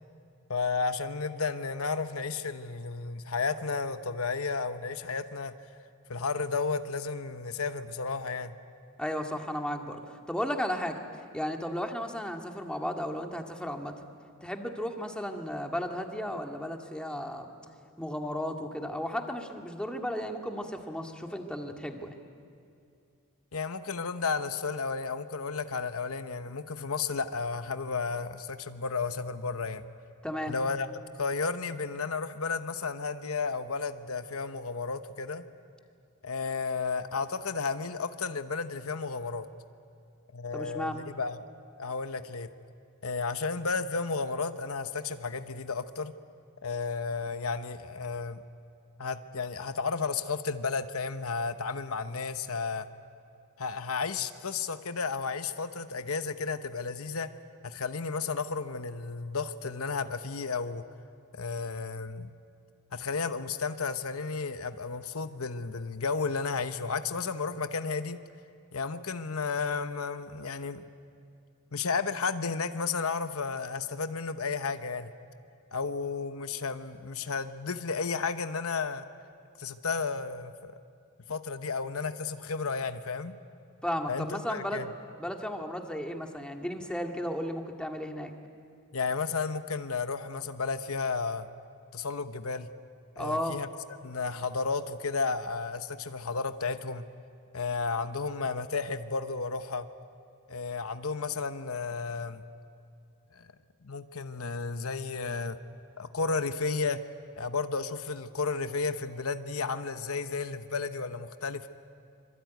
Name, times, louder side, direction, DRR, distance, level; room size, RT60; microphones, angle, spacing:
voice 1, 0.5-5.5 6.1-8.5 23.5-29.8 30.5-35.5 36.2-39.5 40.3-41.4 41.8-42.5 43.0-46.1 46.6-48.4 49.0-52.9 53.6-57.3 57.6-60.8 61.3-62.3 62.9-68.2 68.7-70.9 71.7-75.1 75.7-79.1 79.6-80.8 81.3-83.3 84.1-84.9 88.9-91.5 91.9-92.7 93.2-93.7 94.0-97.0 97.5-99.9 100.5-102.4 103.3-103.5 103.8-105.6 106.0-107.0 107.3-111.7, left 4 dB, 75° left, 10 dB, 1.0 m, -33 dB
voice 2, 9.0-11.0 11.3-14.0 14.4-17.5 18.0-22.1 30.2-30.5 40.5-41.0 83.8-84.9 85.2-88.3 93.2-93.6, equal, 5° left, 3 dB, 2.0 m, -34 dB
25.5 x 24.5 x 9.4 m, 2.5 s
head